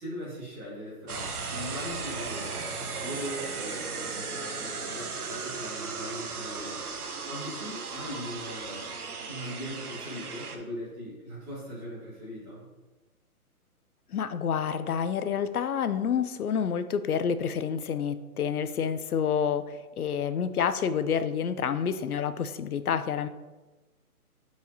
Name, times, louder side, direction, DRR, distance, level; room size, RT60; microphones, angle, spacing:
voice 1, 0.0-6.8 7.2-9.0 9.3-12.7, equal, 10° right, -10 dB, 2.0 m, -40 dB
sound 1, 1.1-10.6, right 4 dB, 75° right, 1.1 m, -36 dB
voice 2, 14.1-23.3, left 7 dB, 70° left, 12 dB, 0.7 m, -28 dB
8.8 x 4.8 x 2.8 m, 1.2 s
hypercardioid pair, 170°, 45 cm